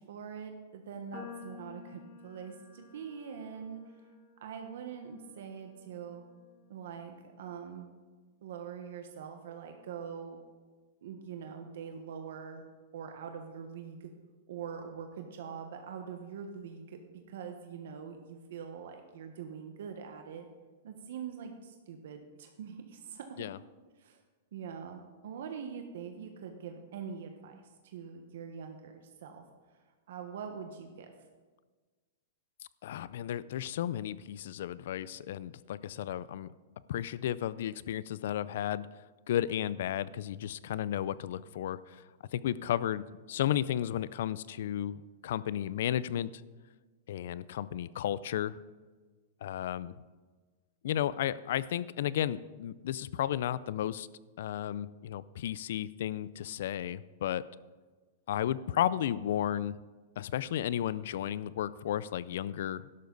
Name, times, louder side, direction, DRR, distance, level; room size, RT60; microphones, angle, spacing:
voice 1, 0.0-3.8 4.4-6.2 6.7-7.9 8.4-10.4 11.0-12.6 12.9-14.1 14.5-20.4 20.8-23.5 24.0-24.2 24.5-29.4 30.1-31.1, right 7 dB, 70° right, 5 dB, 1.3 m, -43 dB
sound 1, 1.1-7.5, left 6 dB, 30° left, 1.5 m, -53 dB
voice 2, 32.8-36.5 36.9-38.9 39.3-42.0 42.3-46.4 47.1-48.6 49.4-50.0 50.8-54.1 54.4-57.4 58.3-59.8 60.2-62.9, left 11 dB, 65° left, 19 dB, 0.4 m, -33 dB
12.0 x 11.5 x 4.0 m, 1.4 s
supercardioid pair, 160°, 0 cm